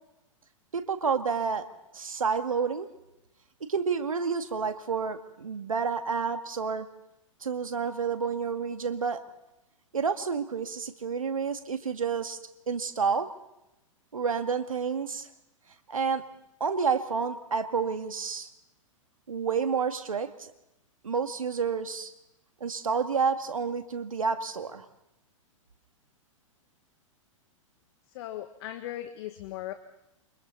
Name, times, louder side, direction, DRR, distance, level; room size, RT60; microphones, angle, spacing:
voice 1, 0.7-1.7 1.9-2.9 3.7-6.9 7.4-9.2 9.9-12.4 12.7-13.3 14.1-15.3 15.9-16.2 16.6-18.5 19.3-20.5 21.0-22.1 22.6-24.9, right 5 dB, 80° right, 8 dB, 2.1 m, -29 dB
voice 2, 28.1-29.7, left 13 dB, 50° left, 8 dB, 1.7 m, -38 dB
29.0 x 25.0 x 4.2 m, 0.88 s
hypercardioid pair, 110°, 17 cm